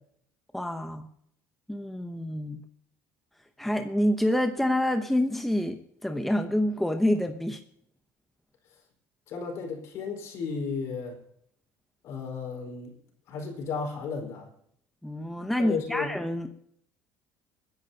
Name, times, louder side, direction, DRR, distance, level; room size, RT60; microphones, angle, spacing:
voice 1, 0.5-1.1 1.7-2.6 3.6-7.6 15.0-16.5, left 1 dB, 5° left, 5 dB, 0.8 m, -27 dB
voice 2, 9.3-11.2 12.0-12.9 13.3-14.5 15.6-16.1, left 5 dB, 55° left, 3 dB, 4.6 m, -34 dB
30.0 x 10.5 x 2.9 m, 0.68 s
cardioid pair, 145°, 6 cm